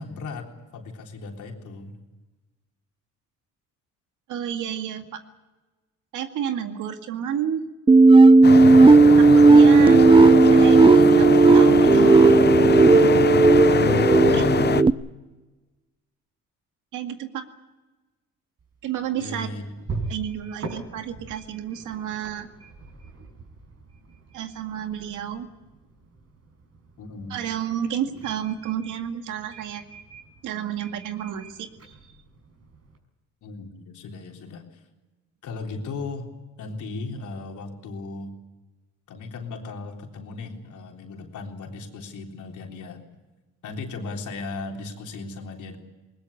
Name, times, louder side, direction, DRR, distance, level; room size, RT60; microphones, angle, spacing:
voice 1, 0.0-2.0 14.1-14.9 19.2-19.7 27.0-27.4 33.4-34.7 35.4-36.3 36.6-38.4 39.1-43.0 43.6-45.8, left 3 dB, 75° left, 2 dB, 3.7 m, -36 dB
voice 2, 4.3-5.2 6.1-7.7 9.2-10.1 10.5-12.4 14.3-14.5 16.9-17.5 18.8-19.5 20.1-22.5 24.3-25.5 27.3-29.8 30.4-32.0, right 9 dB, 85° right, 6 dB, 2.1 m, -31 dB
sound 1, 7.9-14.9, right 3 dB, 15° right, 0.6 m, -13 dB
sound 2, 8.4-14.8, left 7 dB, 35° left, 0.8 m, -24 dB
sound 3, 18.6-33.0, right 3 dB, 55° right, 6.1 m, -42 dB
20.5 x 20.5 x 8.3 m, 1.2 s
cardioid pair, 90°, 30 cm